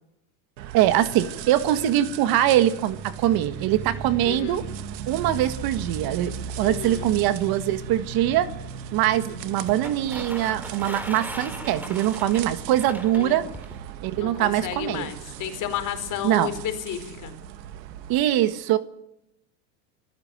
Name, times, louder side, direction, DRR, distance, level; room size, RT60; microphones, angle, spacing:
sound 1, 0.6-18.2, right 7 dB, 90° right, 2.0 m, -37 dB
voice 1, 0.7-4.6 5.1-8.5 8.9-13.5 14.0-15.1 16.2-16.5 18.1-18.8, right 12 dB, 45° right, 12 dB, 1.7 m, -23 dB
voice 2, 4.2-4.6 6.6-7.1 9.1-9.4 13.1-13.4 14.2-17.3, left 10 dB, 40° left, 8 dB, 4.8 m, -32 dB
sound 2, 9.7-13.8, equal, 5° right, 3.2 m, -39 dB
25.5 x 15.5 x 9.2 m, 0.81 s
supercardioid pair, 130°, 49 cm